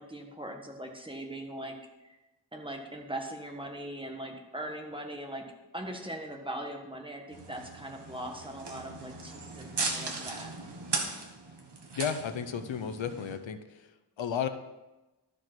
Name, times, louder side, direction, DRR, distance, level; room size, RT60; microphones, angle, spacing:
voice 1, 0.0-1.7 2.0-2.2 2.5-5.4 5.7-10.5, right 1 dB, 10° right, 2 dB, 1.4 m, -40 dB
sound 1, 7.3-13.4, right 3 dB, 65° right, 1.5 m, -38 dB
voice 2, 12.0-13.9 14.2-14.5, left 7 dB, 85° left, 9 dB, 0.8 m, -33 dB
12.5 x 5.1 x 5.9 m, 1.1 s
wide cardioid pair, 115°, 44 cm